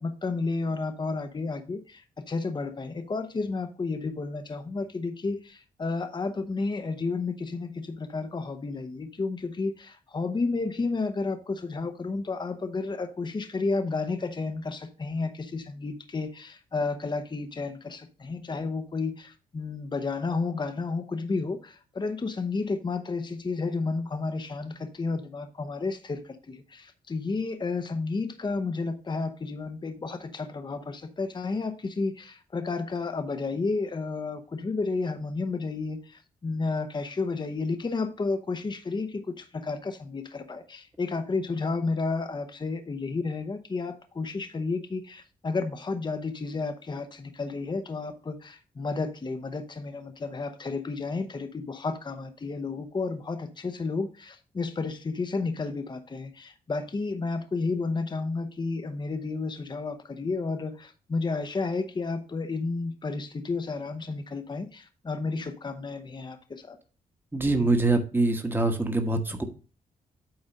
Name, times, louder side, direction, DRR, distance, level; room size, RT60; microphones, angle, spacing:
voice 1, 0.0-66.8, left 3 dB, 30° left, 0.8 m, -32 dB
voice 2, 67.3-69.4, right 2 dB, 15° right, 1.3 m, -24 dB
8.9 x 3.9 x 5.2 m
cardioid pair, 65°, 15 cm